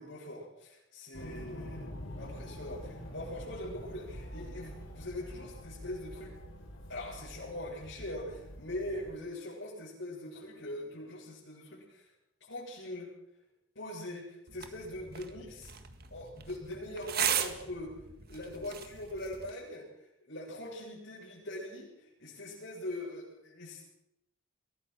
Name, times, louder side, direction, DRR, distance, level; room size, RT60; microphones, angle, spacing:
voice 1, 0.0-1.9 2.2-6.3 6.9-12.1 12.4-13.1 13.7-15.7 16.1-18.0 18.3-19.9 20.3-23.8, left 1 dB, 70° left, -7 dB, 8.0 m, -42 dB
sound 1, 1.1-9.1, equal, 90° left, 4.8 m, -46 dB
sound 2, 14.5-19.5, right 9 dB, 50° right, 1.8 m, -37 dB
23.0 x 17.5 x 6.4 m, 0.79 s
head